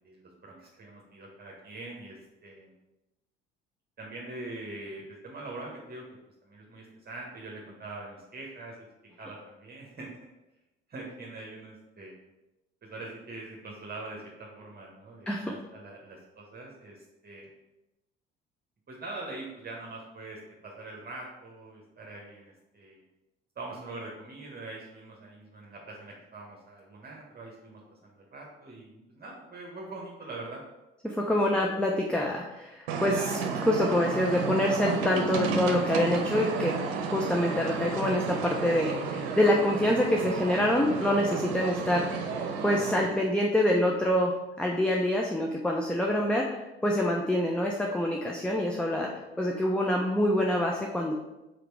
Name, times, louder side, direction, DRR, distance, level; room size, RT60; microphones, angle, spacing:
voice 1, 0.0-2.2 2.4-2.7 4.0-6.0 6.4-8.7 9.2-10.1 10.9-12.1 12.8-17.5 18.9-23.0 23.6-30.6 31.6-31.7, right 2 dB, 30° right, -2 dB, 1.4 m, -43 dB
voice 2, 31.0-36.8 37.1-49.1 49.4-51.1, left 1 dB, 5° left, 0 dB, 0.8 m, -26 dB
sound 1, 32.9-43.1, right 5 dB, 70° right, 0.8 m, -32 dB
5.0 x 4.4 x 4.7 m, 0.99 s
figure-of-eight pair, 55°, 30 cm